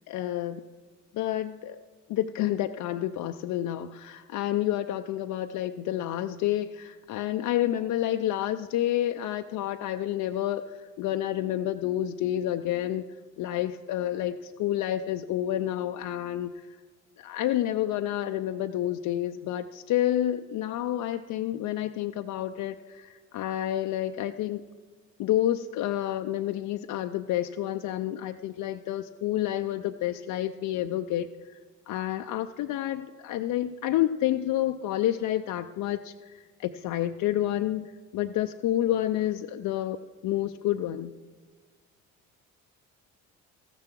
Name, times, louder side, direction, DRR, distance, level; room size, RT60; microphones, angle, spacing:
voice 1, 0.1-0.6 1.1-1.8 2.1-13.0 13.4-16.7 17.2-24.6 25.2-31.6 31.9-41.1, left 12 dB, 65° left, 7 dB, 0.5 m, -29 dB
14.0 x 6.8 x 6.0 m, 1.4 s
supercardioid pair, 60°, 34 cm